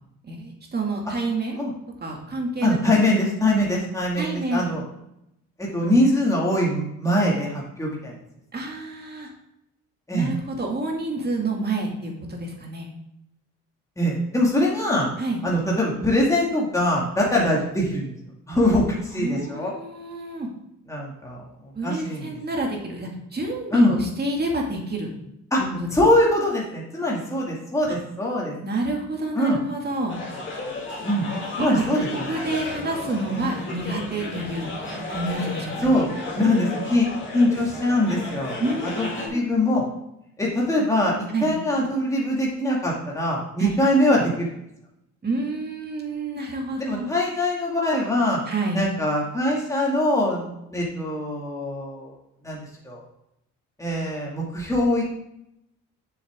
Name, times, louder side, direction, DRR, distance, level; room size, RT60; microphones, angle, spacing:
voice 1, 0.3-1.6 2.0-2.8 4.2-4.6 8.5-9.3 10.1-12.9 15.2-15.4 17.3-17.5 19.1-20.5 21.8-25.1 25.6-25.9 28.6-30.2 31.6-31.8 32.1-34.8 35.1-35.9 38.6-39.4 41.3-41.5 43.6-43.7 45.2-47.1 48.5-48.8, right 2 dB, 35° right, 0 dB, 2.2 m, -28 dB
voice 2, 2.6-4.8 5.6-8.2 10.1-10.3 14.0-15.1 15.4-18.1 18.5-19.7 20.9-22.3 23.7-23.9 25.5-25.6 25.9-28.5 29.3-29.6 31.0-31.3 31.6-32.3 35.8-39.8 40.4-44.6 46.9-48.4 48.7-52.1 52.4-52.6 52.8-53.0 53.8-55.0, left 1 dB, 10° left, -3 dB, 2.2 m, -23 dB
sound 1, 30.1-39.3, left 2 dB, 40° left, 3.0 m, -34 dB
7.0 x 7.0 x 3.6 m, 0.81 s
cardioid pair, 90°, 30 cm